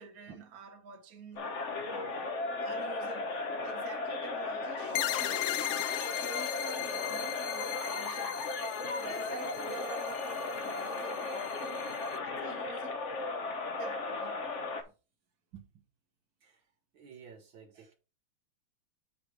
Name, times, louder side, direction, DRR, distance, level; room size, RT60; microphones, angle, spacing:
voice 1, 0.0-1.5 1.8-2.3 2.6-5.4 6.2-8.4 8.9-11.8 12.2-13.0 13.8-14.4, right 5 dB, 45° right, 1.5 m, -47 dB
sound 1, 1.4-14.8, left 3 dB, 45° left, 1.1 m, -36 dB
sound 2, 4.9-12.2, left 14 dB, 80° left, 1.5 m, -38 dB
voice 2, 15.5-15.8 16.4-16.7 16.9-17.9, right 7 dB, 65° right, 1.7 m, -52 dB
8.0 x 3.4 x 5.9 m
omnidirectional pair, 2.4 m